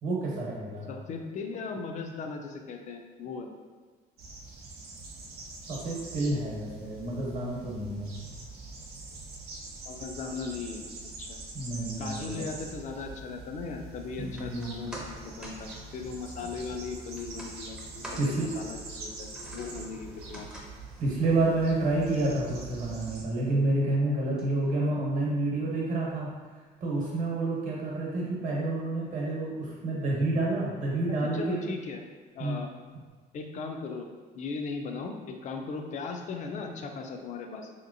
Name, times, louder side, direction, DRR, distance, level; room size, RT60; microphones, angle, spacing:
voice 1, 0.0-0.9 5.7-8.2 11.5-12.5 14.2-14.8 18.2-18.5 21.0-26.3 26.8-31.6 32.4-32.6, right 2 dB, 50° right, -4 dB, 1.0 m, -29 dB
voice 2, 0.9-3.5 9.9-10.8 11.2-11.4 12.0-20.5 28.2-28.3 31.3-32.0 32.3-32.7 33.3-34.1 34.3-37.7, left 4 dB, 45° left, 4 dB, 0.4 m, -38 dB
sound 1, 4.2-23.2, right 3 dB, 70° right, 0.6 m, -44 dB
sound 2, 14.2-26.6 26.9-27.0, equal, 5° right, 0.5 m, -49 dB
3.1 x 2.8 x 2.6 m, 1.4 s
cardioid pair, 110°, 17 cm